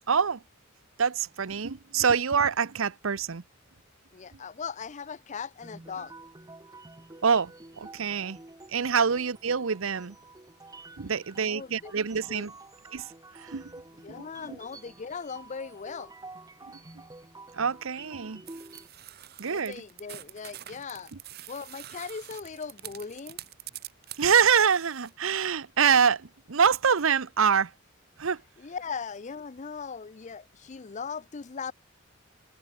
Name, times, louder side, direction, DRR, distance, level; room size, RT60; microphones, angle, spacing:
voice 1, 0.1-0.4 1.0-3.4 7.2-8.4 8.7-10.1 11.0-12.5 12.9-13.1 13.3-13.7 14.1-14.2 17.5-18.4 19.4-19.8 21.1-21.2 24.2-27.7 28.2-28.4, right 6 dB, 75° right, 0.8 m, -25 dB
voice 2, 4.1-6.1 11.4-11.9 12.3-12.5 14.0-16.1 19.4-21.1 21.5-23.4 28.6-31.7, left 5 dB, 35° left, 0.5 m, -39 dB
sound 1, 5.6-18.9, right 2 dB, 15° right, 1.0 m, -49 dB
sound 2, 18.5-25.1, right 13 dB, 50° right, 1.2 m, -46 dB
head